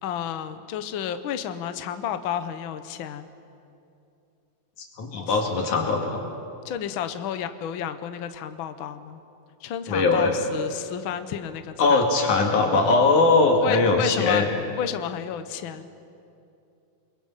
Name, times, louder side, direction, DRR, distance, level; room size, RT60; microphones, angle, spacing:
voice 1, 0.0-3.3 5.1-5.3 6.6-9.2 9.6-12.0 13.6-14.4 14.8-15.9, left 9 dB, 65° left, 10 dB, 1.3 m, -31 dB
voice 2, 5.0-6.2 9.9-10.3 11.8-14.5, left 3 dB, 85° left, 1 dB, 3.8 m, -20 dB
29.0 x 21.5 x 5.7 m, 2.6 s
omnidirectional pair, 3.4 m